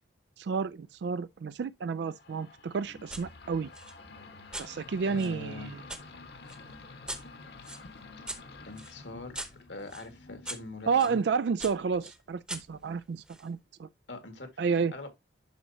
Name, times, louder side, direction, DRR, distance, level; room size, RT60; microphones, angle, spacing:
voice 1, 0.4-3.7 4.6-5.8 10.9-13.9 14.6-14.9, right 5 dB, 70° right, 0.3 m, -31 dB
sound 1, 2.0-11.4, left 3 dB, 60° left, 1.3 m, -50 dB
sound 2, 3.1-3.3 3.7-6.0 6.5-11.2 11.6-13.5, right 1 dB, 5° right, 0.9 m, -43 dB
voice 2, 5.1-5.7 8.6-11.2 14.1-14.7 14.9-15.1, left 2 dB, 75° left, 1.9 m, -43 dB
11.5 x 4.3 x 2.8 m
head